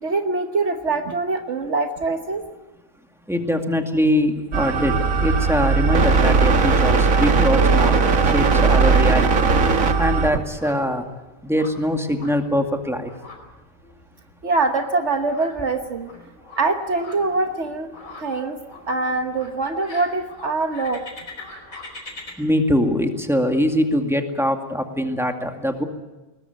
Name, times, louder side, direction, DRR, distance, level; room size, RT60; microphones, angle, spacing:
voice 1, 0.0-2.4 10.3-10.4 14.4-16.1 16.6-17.9 18.2-18.6 18.9-21.0, right 3 dB, 60° right, 6 dB, 1.4 m, -23 dB
voice 2, 3.3-8.0 8.3-9.5 10.0-11.1 11.4-13.1 22.4-25.8, equal, ahead, 4 dB, 2.1 m, -22 dB
sound 1, 4.0-22.3, left 2 dB, 80° left, 5.2 m, -44 dB
sound 2, 4.5-10.3, right 4 dB, 85° right, 1.9 m, -18 dB
21.5 x 20.0 x 9.3 m, 1.1 s
omnidirectional pair, 1.4 m